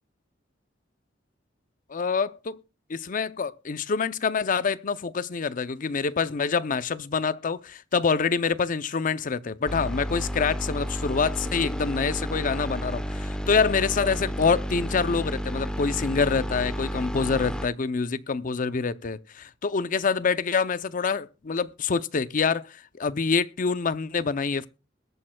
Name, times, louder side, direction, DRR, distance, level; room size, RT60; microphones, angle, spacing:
voice 1, 1.9-2.6 2.9-24.7, left 5 dB, 45° left, 0.5 m, -26 dB
sound 1, 9.7-17.7, equal, 5° left, 0.8 m, -31 dB
21.5 x 8.7 x 2.3 m
head